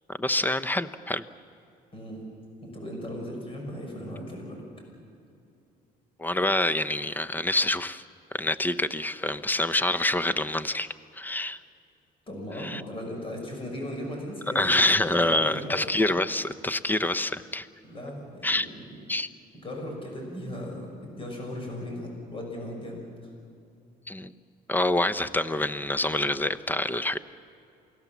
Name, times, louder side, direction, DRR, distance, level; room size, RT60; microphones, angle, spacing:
voice 1, 0.2-1.2 6.2-8.0 8.3-10.9 11.1-11.6 12.6-12.8 14.5-17.7 18.4-18.7 19.1-19.3 24.1-24.3 24.7-27.2, left 2 dB, 10° left, 14 dB, 0.8 m, -26 dB
voice 2, 2.6-4.6 12.3-15.8 17.8-18.7 19.6-23.3, left 1 dB, 30° left, 1 dB, 6.1 m, -37 dB
28.5 x 18.5 x 7.3 m, 2.6 s
cardioid pair, 110°, 17 cm